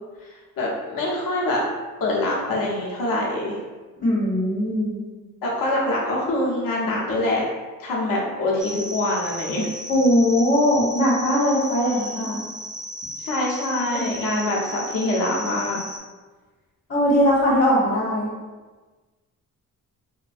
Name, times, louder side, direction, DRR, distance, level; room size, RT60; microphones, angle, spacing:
voice 1, 0.2-1.6 2.0-3.5 5.4-7.4 7.8-9.7 11.8-12.3 13.2-15.8, left 1 dB, 65° left, -3 dB, 0.7 m, -25 dB
voice 2, 4.0-5.0 9.9-12.4 13.9-14.1 16.9-18.3, equal, 45° left, -7 dB, 1.0 m, -20 dB
sound 1, 8.6-16.0, equal, ahead, 0.5 m, -35 dB
2.5 x 2.1 x 2.3 m, 1.3 s
supercardioid pair, 60°, 36 cm